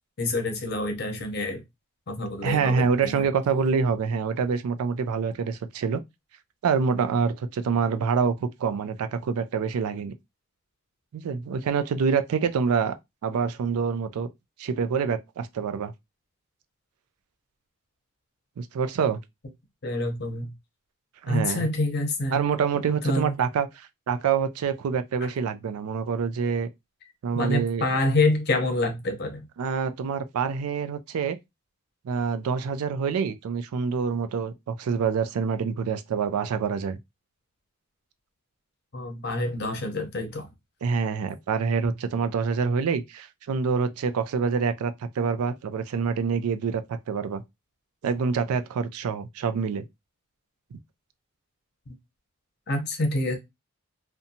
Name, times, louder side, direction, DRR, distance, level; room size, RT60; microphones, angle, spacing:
voice 1, 0.2-1.6 2.1-3.3 19.8-20.5 21.3-22.4 23.0-23.3 27.3-29.5 38.9-40.5 52.7-53.4, left 2 dB, 50° left, 0.7 m, -27 dB
voice 2, 2.4-6.0 6.6-10.1 11.1-13.0 13.2-14.3 14.6-15.9 18.6-19.2 21.2-21.7 22.3-26.7 27.2-27.8 29.6-31.4 32.0-37.0 40.8-46.8 47.1-47.4 48.0-49.8 50.7-50.8, right 6 dB, 85° right, 0.3 m, -26 dB
2.7 x 2.2 x 2.6 m
head